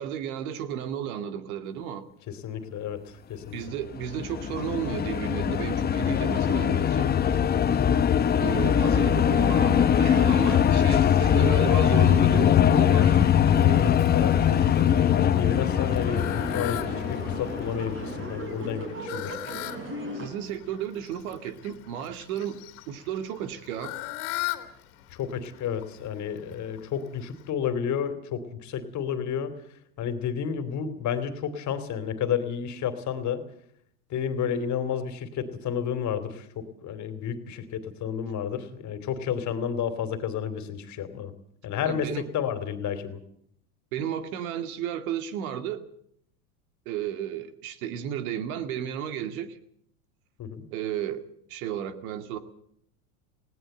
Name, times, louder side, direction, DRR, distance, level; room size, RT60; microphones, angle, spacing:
voice 1, 0.0-2.1 3.5-7.1 8.4-14.0 20.1-22.6 22.9-23.9 41.9-42.2 43.9-45.8 46.9-49.6 50.7-51.2 51.5-52.4, right 9 dB, 70° right, 10 dB, 2.3 m, -33 dB
voice 2, 2.3-3.0 3.3-3.6 14.1-19.3 25.1-29.5 30.0-33.4 34.1-41.3 41.6-43.2 50.4-50.6, left 8 dB, 40° left, 10 dB, 2.9 m, -31 dB
sound 1, 3.8-18.3, left 9 dB, 20° left, 0.9 m, -22 dB
Fowl, 12.1-27.5, left 16 dB, 65° left, 2.4 m, -41 dB
sound 2, 14.1-20.3, right 1 dB, 25° right, 5.6 m, -37 dB
20.0 x 17.5 x 7.9 m, 0.69 s
supercardioid pair, 115°, 45 cm